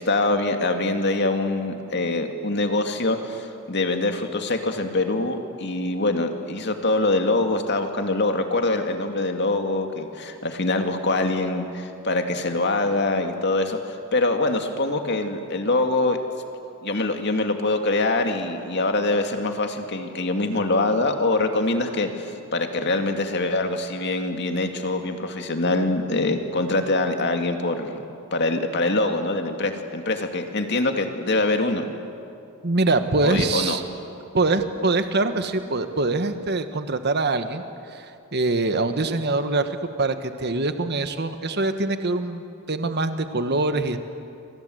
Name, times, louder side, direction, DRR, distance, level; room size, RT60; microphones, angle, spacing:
voice 1, 0.0-13.8 14.1-16.2 16.8-28.0 28.3-31.9 33.2-33.8, left 2 dB, 55° left, 5 dB, 2.3 m, -24 dB
voice 2, 32.6-33.8 34.3-37.6 37.9-44.0, right 2 dB, 50° right, 9 dB, 1.4 m, -24 dB
29.0 x 25.0 x 7.9 m, 2.6 s
head